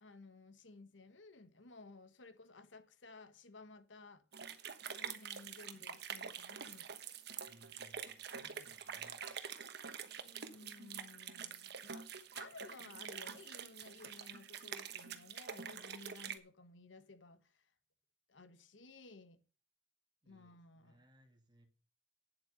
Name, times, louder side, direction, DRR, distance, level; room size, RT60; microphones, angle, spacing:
voice 1, 0.0-4.2 4.9-6.9 10.2-12.1 12.3-17.6 18.3-19.4 20.3-21.0, left 3 dB, 85° left, 1.2 m, -56 dB
sound 1, 4.3-16.4, right 7 dB, 60° right, 1.2 m, -46 dB
voice 2, 7.5-9.2 20.2-21.7, right 1 dB, 25° right, 2.4 m, -66 dB
9.5 x 7.6 x 6.6 m
head